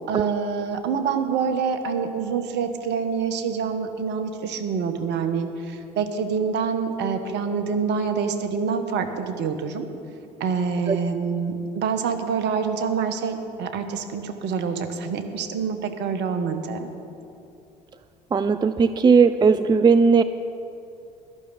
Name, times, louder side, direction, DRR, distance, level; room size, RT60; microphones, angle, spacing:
voice 1, 0.1-9.9 10.4-16.9, right 6 dB, 55° right, 7 dB, 1.3 m, -26 dB
voice 2, 18.3-20.2, right 5 dB, 20° right, 12 dB, 0.4 m, -17 dB
12.0 x 6.7 x 9.7 m, 2.7 s
hypercardioid pair, 60°, 21 cm